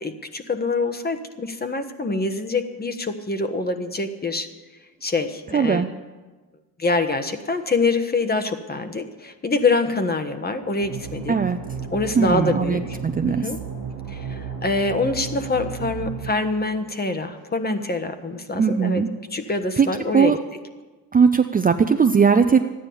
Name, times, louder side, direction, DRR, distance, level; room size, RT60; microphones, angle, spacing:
voice 1, 0.0-4.5 5.0-5.8 6.8-11.4 11.9-13.0 13.3-13.6 14.1-19.0 19.3-20.3, left 3 dB, 25° left, 9 dB, 1.2 m, -25 dB
voice 2, 5.5-5.9 11.3-11.6 12.2-13.4 18.5-19.1 19.8-19.9 20.1-20.4 21.1-22.7, right 6 dB, 20° right, 7 dB, 0.5 m, -19 dB
sound 1, 9.9-18.0, left 1 dB, 70° left, 5.2 m, -45 dB
sound 2, 10.8-16.4, right 7 dB, 65° right, 0.9 m, -34 dB
13.0 x 9.9 x 7.0 m, 1.3 s
cardioid pair, 100°, 39 cm